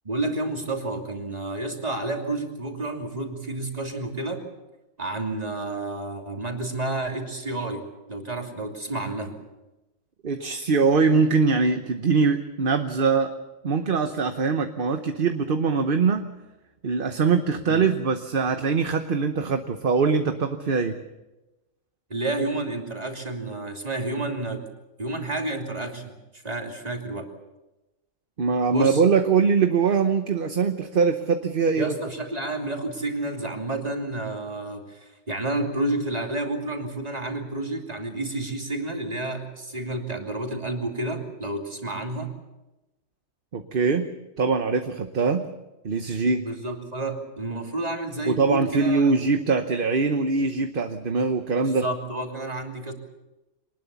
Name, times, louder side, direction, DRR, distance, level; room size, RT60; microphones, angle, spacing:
voice 1, 0.0-4.4 5.0-9.4 17.7-17.8 22.1-24.6 25.0-27.3 28.7-29.0 31.8-42.3 46.1-49.2 51.5-52.9, right 2 dB, 30° right, 2 dB, 3.0 m, -30 dB
voice 2, 10.2-13.3 13.6-16.2 16.8-21.0 28.4-31.9 43.5-44.0 44.4-45.4 45.8-46.4 48.3-51.9, right 5 dB, 45° right, 7 dB, 1.1 m, -22 dB
24.0 x 20.0 x 7.0 m, 1.0 s
omnidirectional pair, 1.4 m